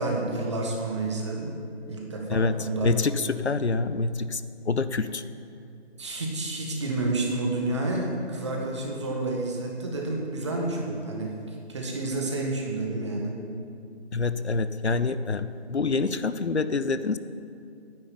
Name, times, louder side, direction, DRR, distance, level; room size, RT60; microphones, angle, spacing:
voice 1, 0.0-1.5 1.9-2.9 6.0-13.4, right 2 dB, 25° right, 0 dB, 1.5 m, -30 dB
voice 2, 2.8-4.4 4.7-5.2 14.1-17.2, left 4 dB, 80° left, 13 dB, 0.7 m, -26 dB
10.0 x 7.6 x 8.8 m, 2.4 s
figure-of-eight pair, 160°, 33 cm